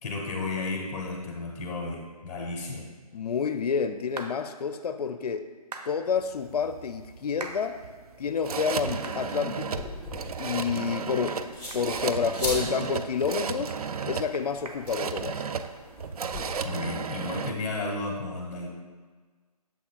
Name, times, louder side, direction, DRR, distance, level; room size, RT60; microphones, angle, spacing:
voice 1, 0.0-2.8 16.6-18.7, left 3 dB, 20° left, -1 dB, 1.1 m, -33 dB
voice 2, 3.1-5.5 5.9-7.8 8.2-9.9 10.4-11.4 11.7-13.7 14.1-15.4, left 6 dB, 75° left, 9 dB, 0.5 m, -29 dB
sound 1, 4.2-4.3 5.7-5.9 7.4-7.6 8.1-8.2 9.0-9.2 9.7-9.8 10.4-10.6 10.9-11.0 11.3-11.4 11.7-11.8 12.1-12.6 12.9-13.0 13.4-15.7 16.0-16.1 16.5-16.7, right 3 dB, 85° right, 0.8 m, -42 dB
sound 2, 6.2-17.5, right 6 dB, 65° right, 0.4 m, -34 dB
sound 3, 9.5-16.4, left 1 dB, 10° right, 1.3 m, -40 dB
7.2 x 5.8 x 2.3 m, 1.4 s
hypercardioid pair, 160°, 20 cm